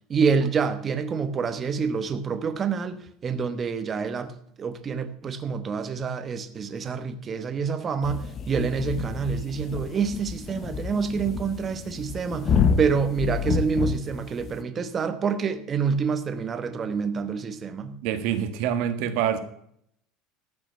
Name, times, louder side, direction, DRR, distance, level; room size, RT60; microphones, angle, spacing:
voice 1, 0.1-4.3 4.6-18.0, right 5 dB, 25° right, 1.1 m, -27 dB
sound 1, 8.0-14.6, left 6 dB, 30° left, 0.9 m, -29 dB
voice 2, 18.0-19.4, right 9 dB, 65° right, 1.5 m, -26 dB
14.0 x 6.1 x 7.8 m
cardioid pair, 150°, 0 cm